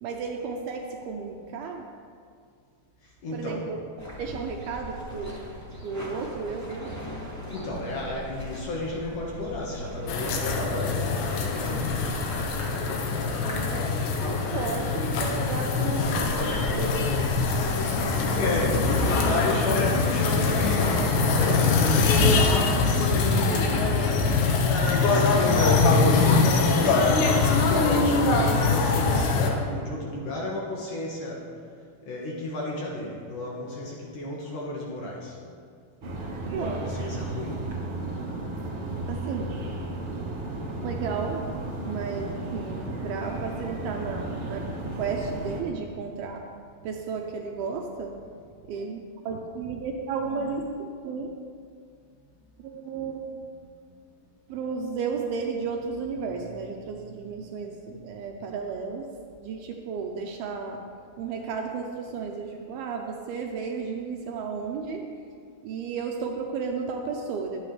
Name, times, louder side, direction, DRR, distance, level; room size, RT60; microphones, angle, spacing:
voice 1, 0.0-1.9 3.3-3.8 4.2-5.5 5.8-7.0 11.6-11.9 13.4-13.9 14.5-17.4 36.5-36.9 39.1-39.6 40.8-41.5 41.9-46.4 46.8-48.2 48.6-51.3 52.6-53.4 54.5-60.8 61.2-65.1 65.6-67.6, right 5 dB, 75° right, 2 dB, 2.4 m, -33 dB
voice 2, 3.0-3.6 7.5-12.1 18.3-24.1 25.1-31.5 32.0-35.4 36.6-37.6, left 1 dB, 60° left, -3 dB, 2.5 m, -33 dB
sound 1, 4.0-20.9, right 1 dB, 10° left, 0.8 m, -39 dB
sound 2, 10.1-29.5, left 4 dB, 80° left, 3.2 m, -23 dB
sound 3, 36.0-45.6, right 2 dB, 60° right, 1.4 m, -34 dB
22.0 x 8.7 x 3.3 m, 2.2 s
omnidirectional pair, 5.0 m